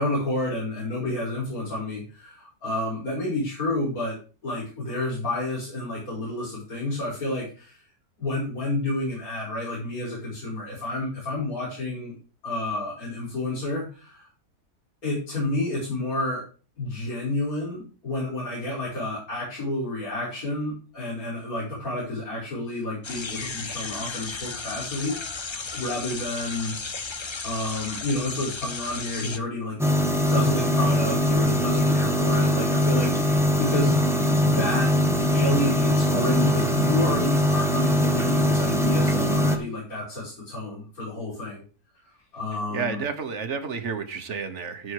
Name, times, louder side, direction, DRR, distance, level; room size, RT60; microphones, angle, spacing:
voice 1, 0.0-7.8 8.2-12.1 12.4-14.3 15.0-16.5 16.8-26.9 27.4-29.8 30.3-34.0 34.4-35.0 35.3-41.6 42.3-43.0, left 2 dB, 65° left, -5 dB, 5.3 m, -30 dB
sound 1, 23.0-29.4, left 4 dB, 35° left, 0.4 m, -34 dB
sound 2, 29.8-39.6, equal, ahead, 1.3 m, -22 dB
voice 2, 42.7-44.9, right 6 dB, 50° right, 8 dB, 1.6 m, -31 dB
14.5 x 5.4 x 4.8 m, 0.34 s
omnidirectional pair, 1.6 m